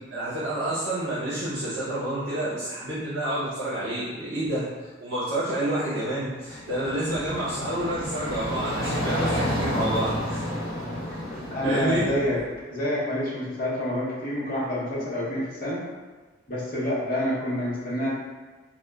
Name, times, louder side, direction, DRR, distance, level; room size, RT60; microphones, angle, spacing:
voice 1, 0.1-4.6 5.0-10.4 11.6-12.0, right 1 dB, 65° right, -11 dB, 0.7 m, -29 dB
sound 1, 6.4-12.4, equal, 15° right, 0.9 m, -30 dB
voice 2, 11.5-12.4 12.7-15.8 16.5-18.1, equal, 50° left, -7 dB, 0.8 m, -27 dB
2.9 x 2.1 x 2.2 m, 1.3 s
head